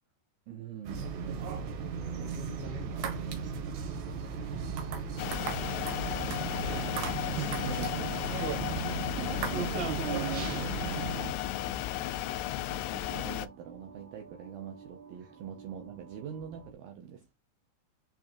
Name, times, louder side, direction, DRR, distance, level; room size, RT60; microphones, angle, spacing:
voice 1, 0.5-1.1 4.6-5.1 7.4-8.1 9.2-9.6 9.9-11.5 12.6-17.4, right 8 dB, 85° right, 2.1 m, -44 dB
sound 1, 0.9-11.3, right 6 dB, 65° right, 3.5 m, -35 dB
voice 2, 2.0-3.8 5.4-6.5 7.2-7.6 15.2-15.3, left 1 dB, 5° right, 2.3 m, -49 dB
sound 2, 3.8-16.7, right 6 dB, 50° right, 3.1 m, -48 dB
sound 3, 5.2-13.5, left 14 dB, 85° left, 2.5 m, -34 dB
11.0 x 4.5 x 2.6 m
omnidirectional pair, 5.6 m